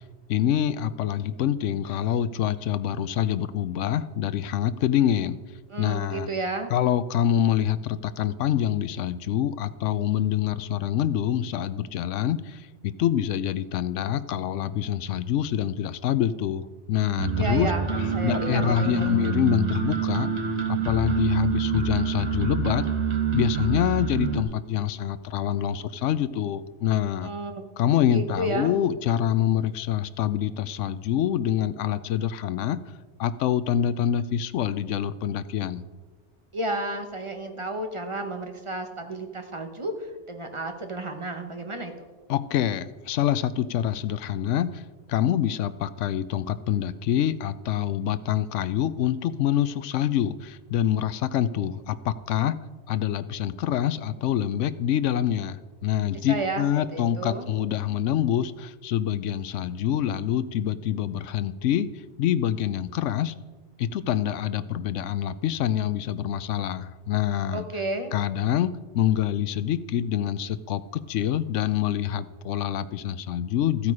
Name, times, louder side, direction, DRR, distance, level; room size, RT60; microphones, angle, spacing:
voice 1, 0.3-5.4 5.8-6.3 6.7-17.7 18.2-20.3 20.7-22.9 23.3-27.3 27.8-32.8 33.2-35.8 42.3-44.8 45.1-52.6 52.9-61.9 62.2-63.3 63.8-67.6 68.1-73.9, left 10 dB, 85° left, 14 dB, 0.9 m, -26 dB
voice 2, 5.7-6.7 17.4-19.2 27.2-27.6 28.1-28.7 36.5-42.1 56.3-56.6 56.9-57.5 67.5-68.1, right 2 dB, 25° right, 5 dB, 1.2 m, -32 dB
sound 1, 17.2-24.4, right 6 dB, 70° right, 1.8 m, -27 dB
13.5 x 8.5 x 4.9 m, 1.3 s
omnidirectional pair, 1.2 m